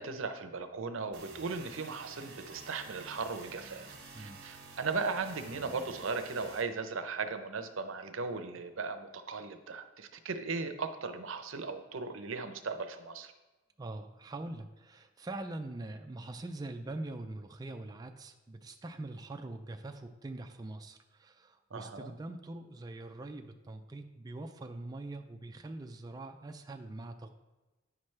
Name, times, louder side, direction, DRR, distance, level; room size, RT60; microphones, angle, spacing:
voice 1, 0.0-3.9 4.2-13.3 21.7-22.1, right 4 dB, 70° right, 8 dB, 0.6 m, -37 dB
sound 1, 1.1-6.6, right 3 dB, 55° right, 1.3 m, -50 dB
voice 2, 13.8-27.3, right 2 dB, 20° right, 5 dB, 0.3 m, -43 dB
9.4 x 5.9 x 3.2 m, 1.1 s
head